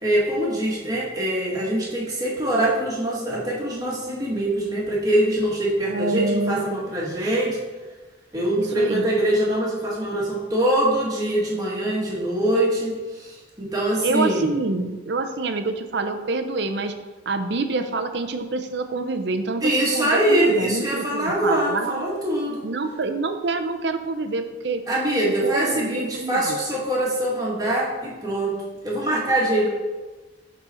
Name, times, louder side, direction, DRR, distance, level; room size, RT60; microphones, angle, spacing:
voice 1, 0.0-7.6 8.3-14.5 19.6-22.7 24.9-28.5 28.8-29.7, right 1 dB, 20° right, -5 dB, 1.8 m, -23 dB
voice 2, 5.9-6.6 8.6-9.0 14.0-16.9 17.3-22.1 22.6-24.8 25.2-26.6 29.6-29.7, right 3 dB, 60° right, 7 dB, 0.6 m, -26 dB
11.5 x 4.1 x 4.3 m, 1.3 s
head